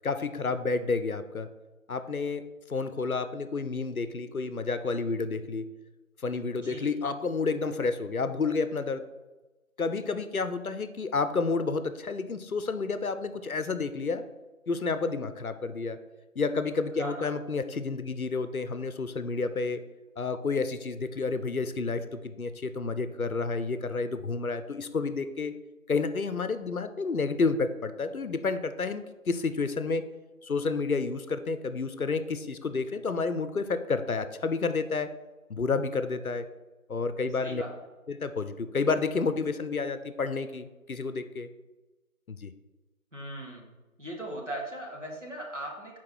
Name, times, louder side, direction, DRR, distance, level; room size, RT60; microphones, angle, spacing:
voice 1, 0.0-1.5 1.9-2.4 2.7-5.6 6.2-9.1 9.8-14.2 14.7-16.0 16.4-19.8 20.2-25.6 25.9-30.0 30.4-35.1 35.5-36.5 36.9-37.6 38.1-41.5 42.3-42.5, left 4 dB, 75° left, 11 dB, 0.6 m, -30 dB
voice 2, 37.4-37.7 43.1-43.7 44.0-46.0, right 1 dB, 55° right, -1 dB, 1.6 m, -38 dB
5.5 x 4.6 x 4.6 m, 1.1 s
figure-of-eight pair, 180°, 43 cm